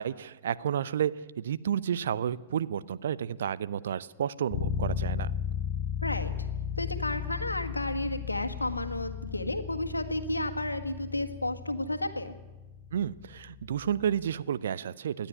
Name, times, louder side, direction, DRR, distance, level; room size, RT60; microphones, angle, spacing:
voice 1, 0.0-5.3 12.9-15.3, right 9 dB, 65° right, 17 dB, 0.7 m, -31 dB
sound 1, 4.5-14.2, left 8 dB, 45° left, 1.3 m, -36 dB
voice 2, 6.0-6.3 6.8-12.3, left 1 dB, 85° left, 7 dB, 1.6 m, -32 dB
26.0 x 10.0 x 9.8 m, 1.1 s
figure-of-eight pair, 90°, 0 cm